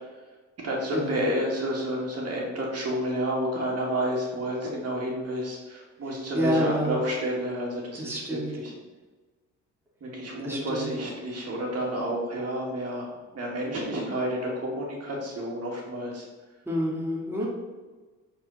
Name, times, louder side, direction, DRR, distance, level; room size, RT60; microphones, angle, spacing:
voice 1, 0.6-8.8 10.0-16.3 17.4-17.5, equal, 55° right, -2 dB, 2.1 m, -30 dB
voice 2, 6.3-7.0 8.0-8.5 10.4-10.9 16.7-17.5, equal, 10° right, -4 dB, 2.0 m, -28 dB
7.9 x 4.3 x 4.1 m, 1.3 s
cardioid pair, 90°, 30 cm